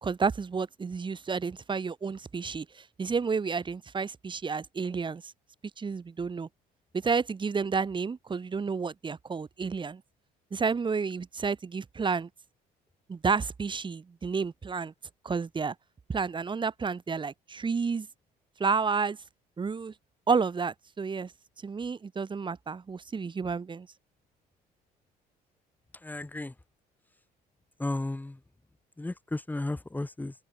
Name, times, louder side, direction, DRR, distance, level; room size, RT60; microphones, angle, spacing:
voice 1, 0.0-5.3 5.8-6.5 6.9-10.0 10.5-12.3 13.1-14.9 15.2-15.7 16.1-18.1 18.6-19.2 19.6-19.9 20.3-21.3 21.6-23.9, right 5 dB, 30° right, 3.7 m, -30 dB
voice 2, 26.0-26.5 27.8-28.4 29.0-30.3, left 2 dB, 10° left, 2.5 m, -34 dB
open air
cardioid pair, 110°, 17 cm